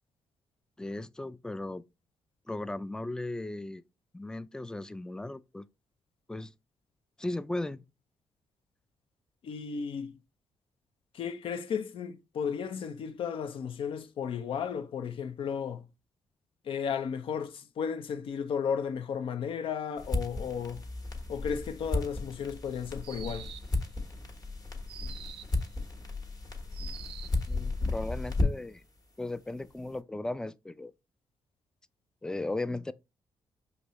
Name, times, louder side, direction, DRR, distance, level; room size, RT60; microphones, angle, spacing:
voice 1, 0.8-1.8 2.5-3.8 4.1-5.7 6.3-6.5 7.2-7.8 27.5-28.8 29.2-30.9 32.2-32.9, left 2 dB, 5° left, 0.3 m, -36 dB
voice 2, 9.4-10.1 11.1-15.9 16.6-20.8 21.3-23.5, left 7 dB, 65° left, 0.6 m, -34 dB
sound 1, 20.0-28.8, left 2 dB, 40° left, 1.3 m, -34 dB
sound 2, 23.0-23.8 24.9-25.6 26.7-27.4, right 10 dB, 70° right, 0.4 m, -46 dB
5.3 x 2.9 x 3.0 m
supercardioid pair, 50°, 10 cm